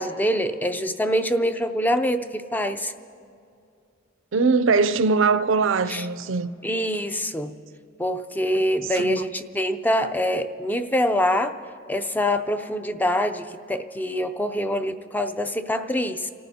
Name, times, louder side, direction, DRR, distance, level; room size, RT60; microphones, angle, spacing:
voice 1, 0.0-2.9 5.9-6.1 6.6-7.5 8.0-11.5 11.9-16.3, equal, 10° left, 0.5 m, -25 dB
voice 2, 4.3-6.5 8.8-9.2, right 4 dB, 75° right, 0.5 m, -21 dB
29.5 x 14.0 x 2.8 m
head